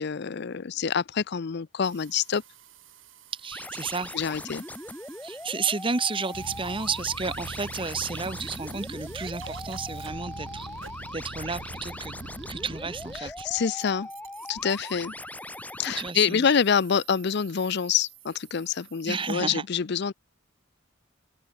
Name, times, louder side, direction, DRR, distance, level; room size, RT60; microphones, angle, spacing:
voice 1, 0.0-2.4 4.1-4.6 13.2-14.1 14.5-15.1 15.8-20.1, left 7 dB, 55° left, 0.5 m, -26 dB
sound 1, 1.8-19.3, right 7 dB, 75° right, 7.2 m, -50 dB
voice 2, 3.3-4.1 5.2-10.7 11.1-12.2 12.5-13.5 15.9-16.5 19.1-19.6, right 4 dB, 25° right, 1.2 m, -32 dB
sound 2, 3.5-16.1, left 1 dB, 10° left, 1.3 m, -40 dB
sound 3, 6.3-13.2, right 3 dB, 60° right, 0.6 m, -42 dB
open air
head